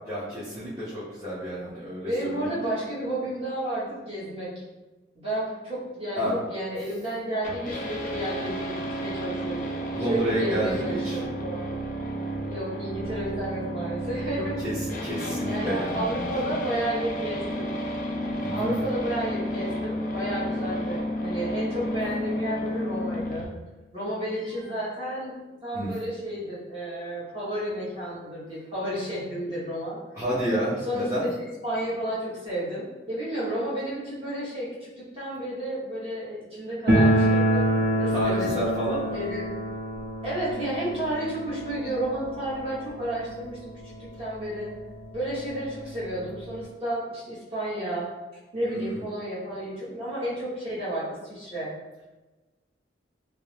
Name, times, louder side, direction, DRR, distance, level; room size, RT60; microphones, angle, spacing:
voice 1, 0.1-2.5 6.1-6.3 9.9-11.2 14.4-16.6 18.4-18.7 25.7-25.9 30.1-31.3 38.1-39.2 48.6-49.0, equal, 15° right, -12 dB, 0.6 m, -30 dB
voice 2, 2.0-4.5 5.1-9.6 10.1-11.7 12.5-14.6 15.5-17.7 18.5-23.5 23.9-30.0 30.8-37.7 38.0-38.5 39.1-39.4 40.2-44.7 45.1-48.1 48.5-51.7, right 1 dB, 35° right, -9 dB, 1.0 m, -32 dB
sound 1, 7.4-23.4, equal, 50° left, 0.5 m, -31 dB
sound 2, 36.9-43.6 43.8-43.9 44.2-44.3 45.0-45.1 45.4-46.6, right 1 dB, 90° right, 0.6 m, -26 dB
2.5 x 2.0 x 3.1 m, 1.1 s
head